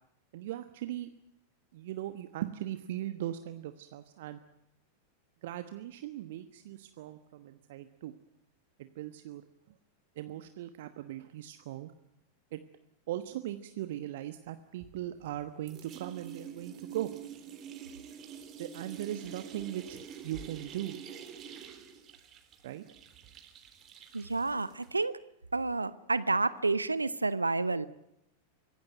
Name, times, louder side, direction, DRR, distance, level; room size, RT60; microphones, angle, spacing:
voice 1, 0.3-1.1 1.7-4.4 5.4-8.1 8.8-9.8 10.1-11.9 12.5-12.6 13.1-17.1 18.6-20.9 22.6-22.8, right 13 dB, 55° right, 10 dB, 1.2 m, -39 dB
sound 1, 14.8-15.4 15.7-25.0, right 8 dB, 30° right, 3.7 m, -47 dB
voice 2, 24.1-25.2 25.5-27.9, right 3 dB, 80° right, 17 dB, 0.9 m, -30 dB
25.0 x 16.5 x 9.1 m, 0.84 s
figure-of-eight pair, 90°, 0 cm